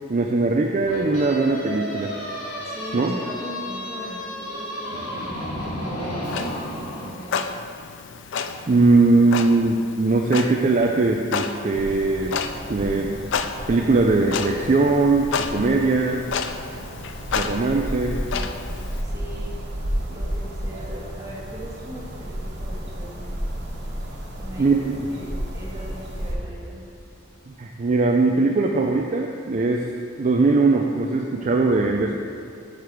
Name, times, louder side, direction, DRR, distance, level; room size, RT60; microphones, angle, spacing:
voice 1, 0.1-2.1 2.9-3.2 8.7-12.4 12.7-13.2 13.7-16.3 17.3-18.2 24.6-24.9 27.5-29.9 30.2-32.1, right 3 dB, 35° right, 1 dB, 0.4 m, -20 dB
sound 1, 0.8-7.1, left 1 dB, 85° left, 2.2 m, -32 dB
voice 2, 2.6-6.3 6.8-7.5 18.3-18.6 19.0-19.6 20.1-23.4 24.3-26.9, equal, 15° right, -5 dB, 1.5 m, -40 dB
Clock, 6.2-19.0, left 6 dB, 55° left, 0.4 m, -32 dB
sound 2, 11.7-26.3, equal, 50° right, 1.3 m, -32 dB
8.2 x 6.6 x 4.6 m, 2.5 s
head